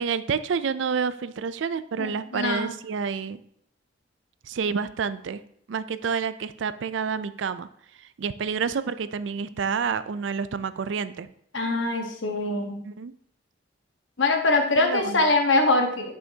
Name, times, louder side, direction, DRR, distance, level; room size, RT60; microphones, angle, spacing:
voice 1, 0.0-3.4 4.4-5.4 5.7-7.7 8.0-11.3 12.8-13.1 14.8-15.3, right 6 dB, 70° right, 14 dB, 0.4 m, -29 dB
voice 2, 2.0-2.7 11.5-12.8 14.2-16.1, left 2 dB, 70° left, 3 dB, 1.3 m, -23 dB
9.4 x 5.6 x 2.8 m, 0.70 s
head